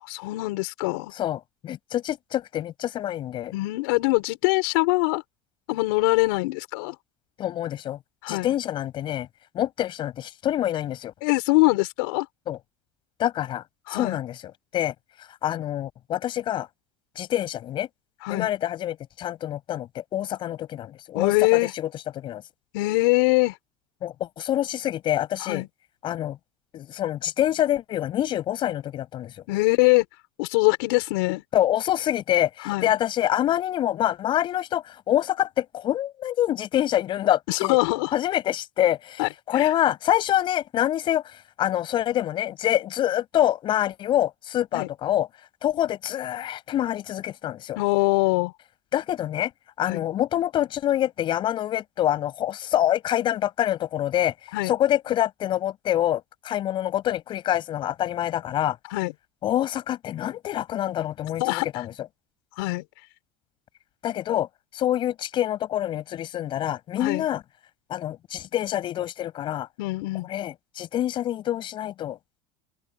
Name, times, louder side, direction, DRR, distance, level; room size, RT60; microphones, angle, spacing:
voice 1, 0.1-1.1 3.5-5.2 5.7-6.9 8.2-8.5 11.2-12.3 13.9-14.2 18.2-18.5 21.1-21.7 22.7-23.6 25.4-25.7 29.5-30.0 30.4-31.4 32.6-32.9 37.5-38.1 39.2-39.7 44.7-44.9 47.8-48.5 49.9-50.0 54.5-54.7 58.9-59.1 61.4-61.7 62.6-62.8 67.0-67.2 69.8-70.3, left 24 dB, 80° left, 6.0 m, -23 dB
voice 2, 1.1-3.5 7.4-8.0 8.3-9.3 9.5-11.1 12.5-12.6 13.2-13.6 13.9-14.9 15.4-16.7 17.2-17.9 18.3-21.9 22.2-22.4 24.0-25.6 26.0-26.4 26.7-29.3 31.5-37.8 38.1-41.2 41.6-45.3 45.6-47.8 48.9-49.5 49.8-54.3 54.6-58.8 59.4-61.9 64.0-64.5 64.7-67.4 67.9-69.7 70.3-72.2, left 12 dB, 45° left, 7.4 m, -26 dB
open air
supercardioid pair, 110°, 11 cm